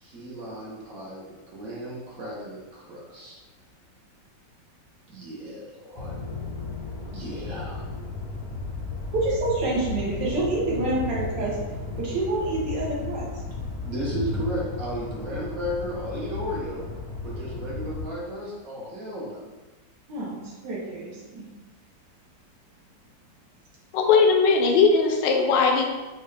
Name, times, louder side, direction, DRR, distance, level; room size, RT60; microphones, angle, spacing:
voice 1, 0.0-3.3 5.1-6.1 7.1-7.9 13.8-16.8 17.2-19.4, equal, 55° right, -5 dB, 1.2 m, -34 dB
sound 1, 6.0-18.1, left 3 dB, 50° left, 0.8 m, -34 dB
voice 2, 9.1-11.6 12.0-13.3 20.1-21.4, right 2 dB, 70° right, -4 dB, 1.5 m, -27 dB
voice 3, 23.9-25.8, left 4 dB, 75° left, 3 dB, 1.2 m, -19 dB
5.6 x 2.4 x 3.2 m, 1.2 s
omnidirectional pair, 2.0 m